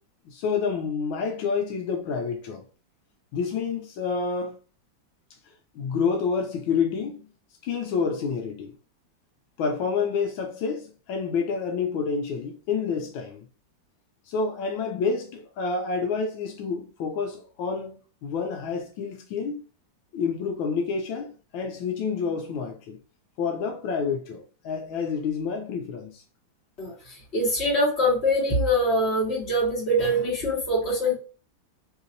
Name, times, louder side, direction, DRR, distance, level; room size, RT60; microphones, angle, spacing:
voice 1, 0.3-2.6 3.3-4.6 5.7-7.3 7.6-8.7 9.6-13.4 14.3-19.6 20.1-23.0 23.4-26.2, left 5 dB, 85° left, 1.4 m, -28 dB
voice 2, 27.3-31.2, equal, 35° left, 1.8 m, -23 dB
3.5 x 2.8 x 2.6 m
omnidirectional pair, 2.1 m